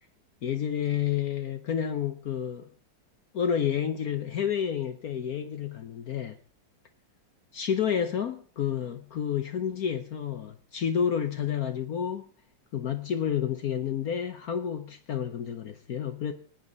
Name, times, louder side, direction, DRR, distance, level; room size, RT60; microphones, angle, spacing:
voice 1, 0.4-2.7 3.3-6.4 7.5-12.2 12.7-16.3, left 8 dB, 60° left, 1.2 m, -30 dB
20.5 x 9.2 x 4.0 m
omnidirectional pair, 2.0 m